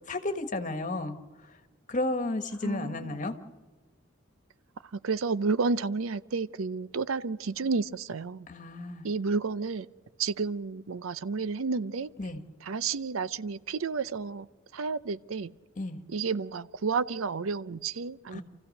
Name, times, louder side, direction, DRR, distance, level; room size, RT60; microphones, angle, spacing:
voice 1, 0.1-1.5 1.9-3.3 8.5-9.1 12.2-12.4 15.8-16.0 18.3-18.4, left 2 dB, 40° left, 7 dB, 1.4 m, -33 dB
voice 2, 2.6-3.2 4.9-8.5 9.0-9.9 10.2-12.1 12.6-14.5 14.7-15.5 16.1-18.4, right 4 dB, 90° right, 17 dB, 0.6 m, -31 dB
28.5 x 15.0 x 6.5 m, 1.3 s
head